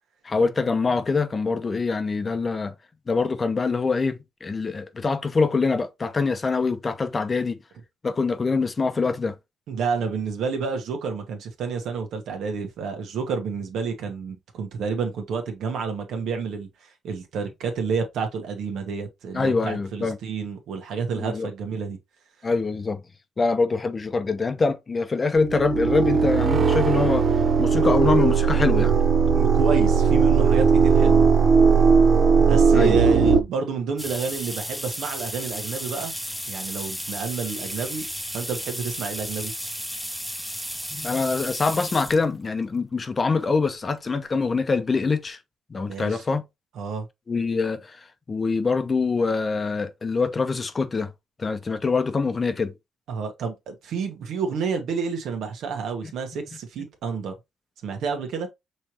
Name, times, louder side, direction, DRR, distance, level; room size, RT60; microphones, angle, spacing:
voice 1, 0.2-2.7 3.1-7.6 8.0-9.4 19.3-20.2 21.2-21.5 22.4-23.0 23.4-27.3 27.6-28.9 32.7-33.0 40.9-45.4 45.7-46.4 47.3-48.0 48.3-51.1 51.4-52.7, left 4 dB, 30° left, 0.7 m, -24 dB
voice 2, 9.7-22.0 29.3-31.3 32.4-36.1 36.5-38.1 38.3-39.5 45.8-46.2 46.7-47.1 53.1-57.3 57.8-58.5, right 5 dB, 80° right, 1.4 m, -29 dB
sound 1, 25.4-33.4, right 5 dB, 50° right, 0.8 m, -18 dB
sound 2, 34.0-42.2 43.1-43.2 44.5-44.6 44.9-45.0 45.3-45.4, equal, ahead, 0.8 m, -33 dB
5.4 x 3.3 x 2.9 m
cardioid pair, 90°, 0 cm